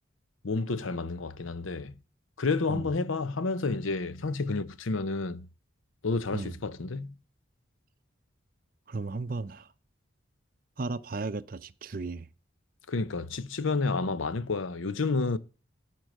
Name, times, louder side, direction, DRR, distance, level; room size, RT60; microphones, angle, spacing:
voice 1, 0.4-1.9 2.4-5.5 6.0-7.2 12.9-15.4, left 3 dB, 90° left, 0.8 m, -30 dB
voice 2, 8.9-9.7 10.8-12.3, right 3 dB, 45° right, 0.6 m, -35 dB
14.0 x 4.7 x 6.5 m
head